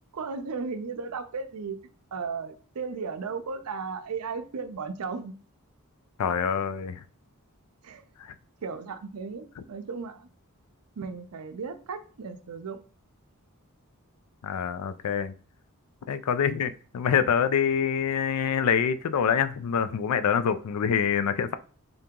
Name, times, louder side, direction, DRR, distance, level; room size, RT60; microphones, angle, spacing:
voice 1, 0.1-1.8 2.1-5.3 7.8-8.0 8.6-10.3 11.0-12.8, right 5 dB, 85° right, 0.5 m, -35 dB
voice 2, 6.2-7.0 14.4-15.3 16.1-21.5, left 7 dB, 85° left, 0.4 m, -25 dB
3.9 x 2.8 x 3.5 m
head